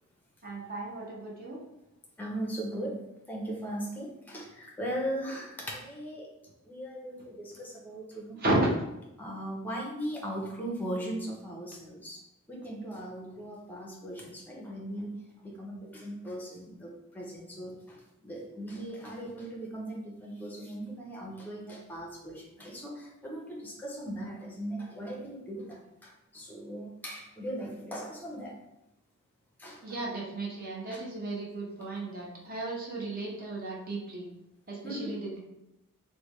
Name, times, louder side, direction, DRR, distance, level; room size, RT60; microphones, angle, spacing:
voice 1, 0.4-1.6 8.4-8.6 29.8-34.3 34.7-35.4, right 2 dB, 40° right, -3 dB, 0.6 m, -34 dB
voice 2, 2.2-3.0 3.3-6.3 6.7-8.4 9.2-12.2 12.5-15.2 15.4-18.0 18.2-28.6 29.6-30.0 30.9-31.0 34.8-35.2, right 1 dB, 10° left, -2 dB, 0.5 m, -38 dB
3.2 x 2.1 x 3.0 m, 0.91 s
head